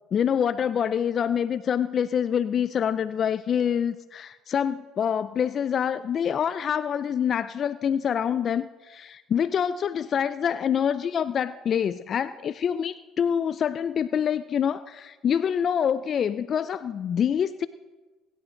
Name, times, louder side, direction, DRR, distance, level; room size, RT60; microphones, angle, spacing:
voice 1, 0.1-17.7, left 8 dB, 45° left, 14 dB, 0.4 m, -26 dB
21.5 x 12.0 x 3.9 m, 1.3 s
supercardioid pair, 85°, 0 cm